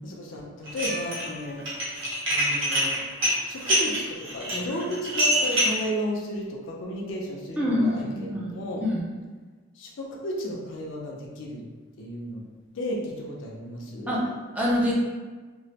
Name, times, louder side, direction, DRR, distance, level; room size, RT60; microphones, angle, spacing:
voice 1, 0.0-1.6 2.3-3.0 3.5-8.8 9.8-11.6 12.0-12.4 12.7-14.1, equal, 60° left, -2 dB, 0.5 m, -33 dB
Dishes pots and pans, 0.7-1.3 1.6-5.8, equal, 65° right, 0.9 m, -25 dB
sound 1, 0.8-3.1, left 1 dB, 40° right, 0.8 m, -45 dB
voice 2, 7.6-9.1 14.1-14.3 14.5-14.9, left 1 dB, 5° right, -6 dB, 0.4 m, -26 dB
3.0 x 2.1 x 2.8 m, 1.3 s
head